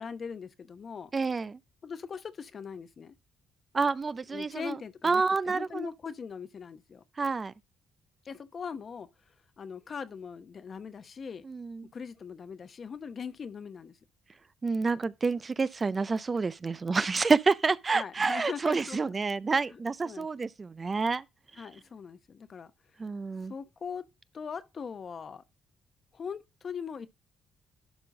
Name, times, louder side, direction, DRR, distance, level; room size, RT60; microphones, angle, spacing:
voice 1, 0.0-1.1 1.8-3.1 4.3-7.0 8.2-9.1 9.6-11.4 11.9-14.0 17.9-19.1 19.7-19.8 20.0-20.3 21.6-22.7 23.5-24.0 24.3-25.4 26.1-27.1, left 6 dB, 50° left, 0.9 m, -40 dB
voice 2, 1.1-1.6 3.7-4.8 5.0-5.9 7.2-7.5 11.4-11.8 14.6-21.2 23.0-23.5, right 4 dB, 35° right, 0.4 m, -28 dB
11.5 x 3.8 x 3.7 m
cardioid pair, 75°, 0 cm